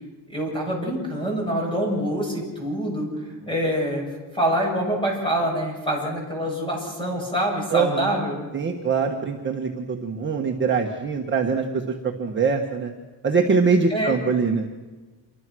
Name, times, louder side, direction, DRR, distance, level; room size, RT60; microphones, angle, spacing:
voice 1, 0.3-8.4 13.9-14.2, equal, 10° left, 0 dB, 7.5 m, -26 dB
voice 2, 7.7-8.2 8.5-12.9 13.2-14.7, right 5 dB, 25° right, 1 dB, 1.5 m, -23 dB
27.5 x 24.0 x 6.3 m, 1.3 s
cardioid pair, 180°, 43 cm